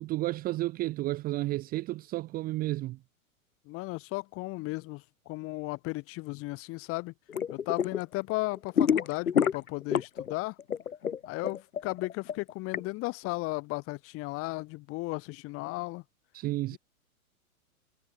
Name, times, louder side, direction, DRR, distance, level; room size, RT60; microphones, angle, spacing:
voice 1, 0.0-3.0 16.3-16.8, right 17 dB, 20° right, 0.9 m, -32 dB
voice 2, 3.7-7.1 7.5-10.6 11.2-16.0 16.7-16.8, left 23 dB, 30° left, 2.6 m, -35 dB
sound 1, 7.3-8.0 8.3-10.3 10.6-12.8, left 8 dB, 75° left, 1.2 m, -27 dB
figure-of-eight pair, 105°, 43 cm